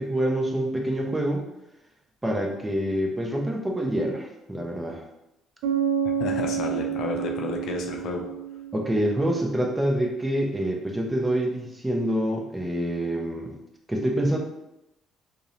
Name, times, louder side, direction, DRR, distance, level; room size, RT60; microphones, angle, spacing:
voice 1, 0.0-1.5 2.2-5.1 8.7-13.5 13.9-14.4, right 1 dB, 15° right, 1 dB, 0.6 m, -26 dB
Bass guitar, 5.6-9.3, right 8 dB, 80° right, 0.4 m, -29 dB
voice 2, 6.2-8.2, left 3 dB, 70° left, 2 dB, 0.4 m, -31 dB
2.7 x 2.0 x 2.5 m, 0.88 s
supercardioid pair, 60°, 0 cm